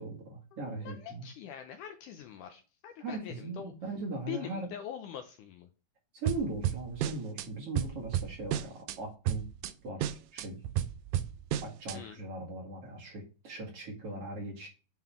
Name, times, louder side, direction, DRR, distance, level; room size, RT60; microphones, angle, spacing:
voice 1, 0.0-1.3 3.0-4.7 6.1-9.4 9.8-10.6 11.6-14.7, right 2 dB, 45° right, -1 dB, 2.5 m, -39 dB
voice 2, 0.5-3.7 4.3-5.7 11.9-12.2, left 10 dB, 80° left, 6 dB, 1.9 m, -43 dB
sound 1, 6.3-7.5 7.8-9.0 9.3-9.7 10.0-12.0, right 11 dB, 80° right, 2.2 m, -32 dB
9.1 x 3.9 x 4.4 m, 0.33 s
omnidirectional pair, 4.2 m